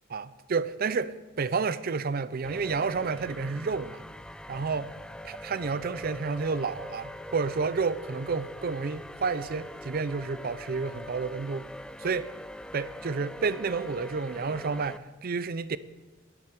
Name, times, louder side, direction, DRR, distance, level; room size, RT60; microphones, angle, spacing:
voice 1, 0.1-4.0 4.5-4.9 5.2-11.7 12.0-12.3 12.7-15.8, right 4 dB, 50° right, 0.5 m, -30 dB
sound 1, 2.4-15.0, left 1 dB, 5° left, 0.3 m, -43 dB
10.5 x 8.3 x 8.5 m
head